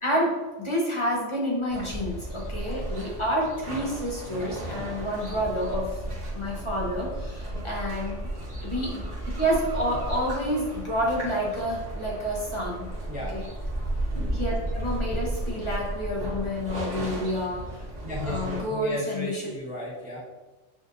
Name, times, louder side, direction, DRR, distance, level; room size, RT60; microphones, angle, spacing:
voice 1, 0.0-5.9 6.3-8.2 8.6-9.1 9.4-12.9 13.3-13.4 14.3-17.6 18.2-19.5, equal, 30° left, -3 dB, 0.7 m, -29 dB
sound 1, 1.7-18.6, right 1 dB, 35° right, 1.2 m, -34 dB
voice 2, 18.0-20.2, left 1 dB, 10° right, -4 dB, 0.4 m, -34 dB
6.2 x 2.5 x 2.6 m, 1.2 s
omnidirectional pair, 1.3 m